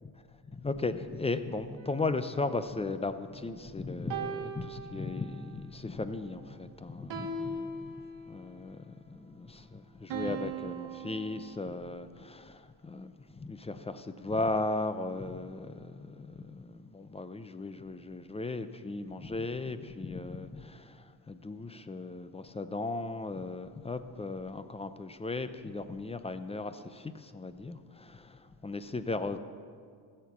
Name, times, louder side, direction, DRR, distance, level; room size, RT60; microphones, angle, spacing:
voice 1, 0.5-8.0 8.3-28.4 28.6-29.4, left 3 dB, 15° left, 11 dB, 0.5 m, -36 dB
sound 1, 1.8-3.5 4.1-5.5 7.1-8.5 10.1-11.6, right 4 dB, 70° right, 1.3 m, -40 dB
14.5 x 6.7 x 7.1 m, 2.1 s
cardioid pair, 95°, 45 cm